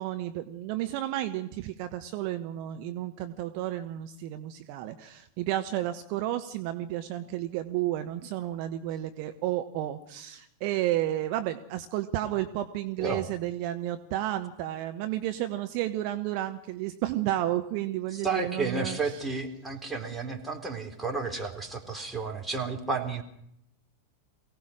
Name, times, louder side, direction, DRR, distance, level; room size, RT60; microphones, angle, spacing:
voice 1, 0.0-19.2, right 13 dB, 45° right, 8 dB, 1.2 m, -32 dB
voice 2, 18.2-23.2, right 4 dB, 10° right, 2 dB, 3.8 m, -32 dB
23.5 x 17.5 x 6.4 m, 0.76 s
figure-of-eight pair, 90°, 0 cm